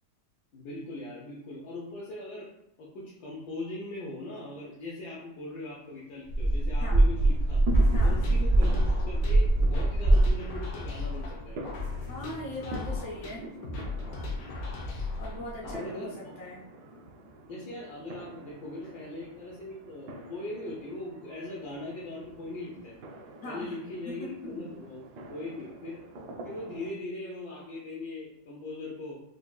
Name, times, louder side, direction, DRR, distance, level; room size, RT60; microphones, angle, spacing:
voice 1, 0.5-2.5 2.8-7.6 8.0-11.6 15.6-16.3 17.5-23.0 23.4-25.0 25.3-26.0 26.4-29.2, left 2 dB, 75° left, -6 dB, 1.3 m, -40 dB
sound 1, 6.3-10.3, right 1 dB, 60° right, 0.6 m, -23 dB
sound 2, 7.0-26.9, equal, 80° right, 1.1 m, -45 dB
sound 3, 7.7-15.7, left 3 dB, 90° left, 1.4 m, -37 dB
voice 2, 7.9-8.2 12.1-13.5 15.2-16.7 23.4-23.8 24.0-24.7, left 1 dB, 45° left, -5 dB, 0.5 m, -40 dB
4.9 x 2.4 x 2.2 m, 0.82 s
omnidirectional pair, 1.8 m